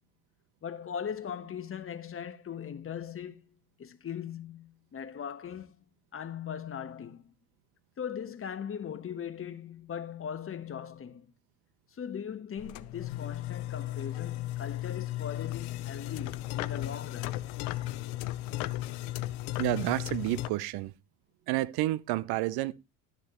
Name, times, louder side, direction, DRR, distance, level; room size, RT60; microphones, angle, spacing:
voice 1, 0.6-3.4 3.8-5.7 6.1-7.3 8.0-11.3 11.9-17.3, left 8 dB, 30° left, 1.4 m, -39 dB
sound 1, 12.6-20.5, left 16 dB, 60° left, 0.9 m, -35 dB
voice 2, 19.6-20.9 21.5-22.7, right 17 dB, 55° right, 0.9 m, -30 dB
13.0 x 10.0 x 3.1 m
hypercardioid pair, 70°, 45 cm